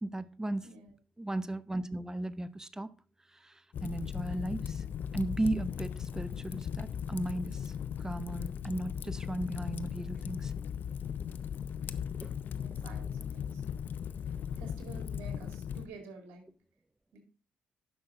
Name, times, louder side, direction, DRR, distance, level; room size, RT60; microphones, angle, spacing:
voice 1, 0.0-0.7 1.2-2.9 3.3-4.8 5.1-7.7 8.0-10.5 12.2-12.3, right 1 dB, 15° right, 0.7 m, -36 dB
Fire, 3.7-15.9, left 8 dB, 60° left, 0.6 m, -38 dB
Bird, 10.0-12.1, left 1 dB, 30° left, 2.1 m, -58 dB
voice 2, 12.6-14.0 14.6-16.4 17.1-17.2, right 3 dB, 75° right, 2.5 m, -50 dB
11.0 x 5.9 x 3.8 m
supercardioid pair, 55°, 4 cm